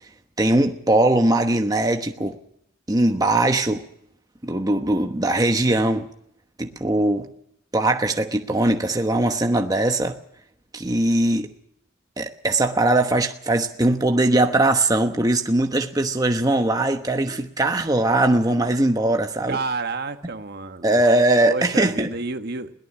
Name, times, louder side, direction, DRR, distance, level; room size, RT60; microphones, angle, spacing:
voice 1, 0.4-2.4 2.9-3.9 4.4-6.1 6.6-7.3 7.7-10.2 10.7-11.5 12.2-19.6 20.8-22.1, right 2 dB, 20° right, 5 dB, 1.1 m, -20 dB
voice 2, 19.5-21.0 21.4-22.7, right 3 dB, 50° right, 8 dB, 1.4 m, -29 dB
21.5 x 18.0 x 7.3 m, 0.73 s
head